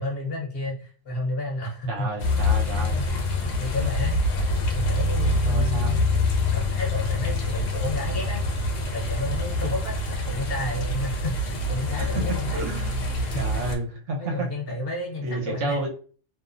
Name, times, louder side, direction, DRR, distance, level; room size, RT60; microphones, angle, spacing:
voice 1, 0.0-2.1 3.4-4.2 4.7-6.1 6.5-8.4 8.9-12.6 13.0-13.6 14.2-15.8, left 2 dB, 55° left, -1 dB, 0.9 m, -31 dB
voice 2, 1.9-3.0 5.4-6.0 12.0-12.2 12.5-13.0 13.3-14.5 15.2-15.9, right 1 dB, 75° right, -1 dB, 1.1 m, -30 dB
sound 1, 2.2-13.8, left 2 dB, 85° left, 1.0 m, -25 dB
2.7 x 2.0 x 2.4 m, 0.41 s
omnidirectional pair, 1.3 m